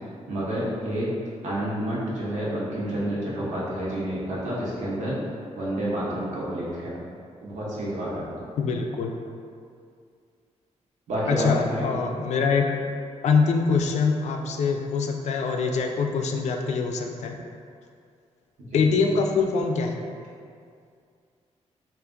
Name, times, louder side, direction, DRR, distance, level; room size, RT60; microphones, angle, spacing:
voice 1, 0.3-1.1 1.4-5.2 5.5-7.0 7.4-8.5 11.1-11.9 18.6-18.8, right 1 dB, 90° right, -6 dB, 1.0 m, -29 dB
voice 2, 8.6-9.1 11.3-12.8 13.2-17.4 18.7-20.0, left 5 dB, 70° left, 3 dB, 0.4 m, -24 dB
3.4 x 2.5 x 3.7 m, 2.3 s
wide cardioid pair, 175°, 12 cm